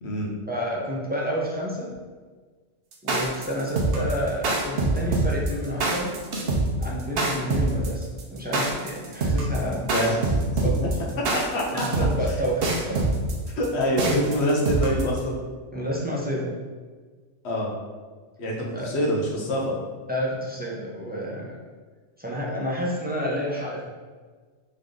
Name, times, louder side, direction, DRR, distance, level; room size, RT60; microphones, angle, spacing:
voice 1, 0.5-1.9 3.0-6.1 6.8-9.9 10.6-11.1 11.7-13.1 15.7-16.6 18.7-18.9 20.1-21.5 22.2-23.9, equal, 10° right, -5 dB, 0.5 m, -29 dB
sound 1, 2.9-15.2, right 2 dB, 60° right, 0.9 m, -24 dB
voice 2, 9.6-10.4 11.3-11.8 13.6-15.4 17.4-17.7 18.4-19.8, equal, 65° left, -1 dB, 1.1 m, -25 dB
3.9 x 3.4 x 3.7 m, 1.4 s
omnidirectional pair, 1.2 m